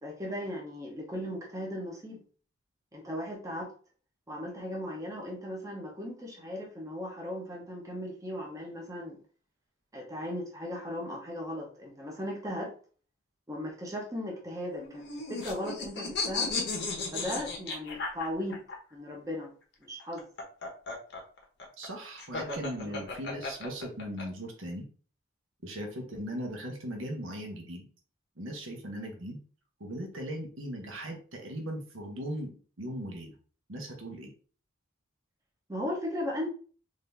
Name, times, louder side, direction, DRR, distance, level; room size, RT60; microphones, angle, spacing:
voice 1, 0.0-2.2 2.9-3.7 4.3-9.2 9.9-12.7 13.5-16.5 17.1-18.6 18.9-19.5 19.9-20.3 22.8-23.0 35.7-36.5, left 1 dB, 15° right, -2 dB, 0.8 m, -37 dB
sound 1, 14.7-18.8 20.0-24.2, left 3 dB, 55° left, 1.0 m, -35 dB
voice 2, 21.8-24.9 25.6-27.9 28.4-29.4 29.8-33.3 33.7-34.3, equal, 70° right, 2 dB, 1.0 m, -38 dB
3.9 x 2.6 x 3.4 m, 0.41 s
head